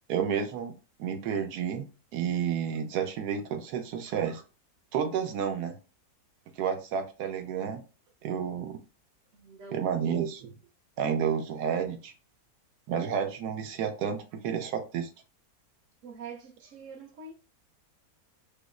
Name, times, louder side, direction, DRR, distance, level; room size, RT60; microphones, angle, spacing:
voice 1, 0.1-0.7 1.0-4.4 4.9-5.8 6.6-7.8 8.2-8.8 9.7-10.5 11.0-12.1 12.9-15.1, right 7 dB, 90° right, 1.2 m, -31 dB
voice 2, 9.3-10.2 16.0-17.3, right 5 dB, 65° right, 0.8 m, -45 dB
5.0 x 2.0 x 2.3 m
omnidirectional pair, 1.7 m